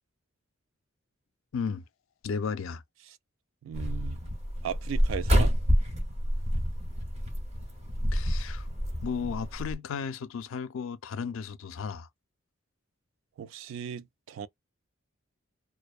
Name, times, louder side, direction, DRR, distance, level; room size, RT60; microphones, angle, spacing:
voice 1, 1.5-1.8 2.2-2.8 8.1-8.7 9.0-12.1, left 6 dB, 75° left, 0.4 m, -34 dB
voice 2, 3.6-4.2 4.6-5.5 13.4-14.5, right 8 dB, 70° right, 0.3 m, -37 dB
sound 1, 3.7-9.8, equal, 30° right, 0.9 m, -28 dB
2.5 x 2.1 x 2.3 m
head